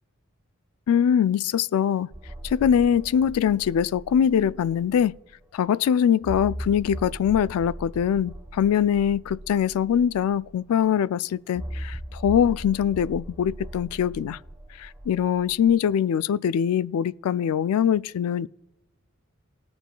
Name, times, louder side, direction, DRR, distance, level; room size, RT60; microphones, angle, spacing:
voice 1, 0.9-2.1 2.4-5.1 5.5-14.4 14.8-18.5, left 8 dB, 80° left, 0.3 m, -23 dB
sound 1, 2.1-5.4 5.7-5.8 6.2-10.8 11.5-15.9, right 1 dB, 15° right, 1.3 m, -39 dB
19.0 x 6.9 x 2.2 m
head